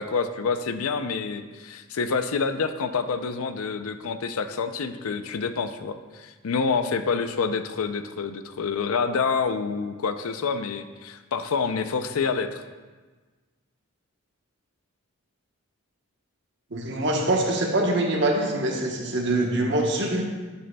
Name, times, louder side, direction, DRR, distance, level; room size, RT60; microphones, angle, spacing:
voice 1, 0.0-12.6, left 5 dB, 80° left, 10 dB, 0.5 m, -27 dB
voice 2, 16.7-20.2, right 1 dB, 55° right, 0 dB, 1.1 m, -24 dB
9.8 x 7.6 x 2.3 m, 1.3 s
head